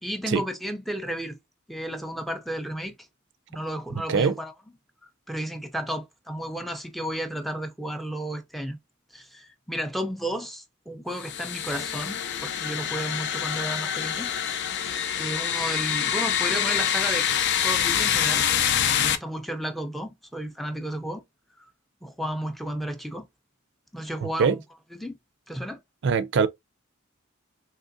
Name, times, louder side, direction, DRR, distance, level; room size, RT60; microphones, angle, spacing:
voice 1, 0.0-1.4 1.7-3.0 3.5-4.5 5.3-8.8 9.1-14.3 14.8-17.3 17.6-18.5 19.0-21.2 21.6-21.7 22.0-23.3 23.9-24.6 24.9-25.2 25.5-25.8, right 1 dB, ahead, 0.4 m, -33 dB
sound 1, 11.2-19.2, left 9 dB, 55° left, 0.4 m, -26 dB
voice 2, 24.2-24.6 26.0-26.5, right 5 dB, 60° right, 0.4 m, -22 dB
3.6 x 2.9 x 2.5 m
head